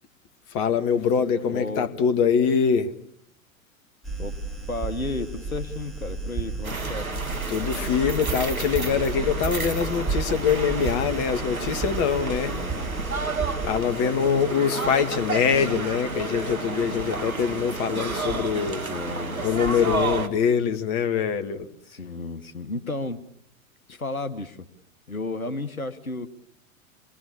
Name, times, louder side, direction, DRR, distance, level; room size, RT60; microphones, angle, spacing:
voice 1, 0.5-2.9 7.5-12.6 13.6-18.8 19.4-21.7, left 7 dB, 40° left, 1.9 m, -24 dB
voice 2, 1.4-1.9 4.2-4.3 4.7-7.1 12.4-12.9 18.5-18.6 18.9-19.4 21.9-23.2 23.9-24.7 25.1-26.3, left 2 dB, 90° left, 1.4 m, -33 dB
sound 1, 4.0-13.8, right 4 dB, ahead, 4.0 m, -33 dB
sound 2, 6.6-20.3, right 3 dB, 85° right, 2.0 m, -31 dB
27.5 x 21.0 x 7.2 m
figure-of-eight pair, 95°, 41 cm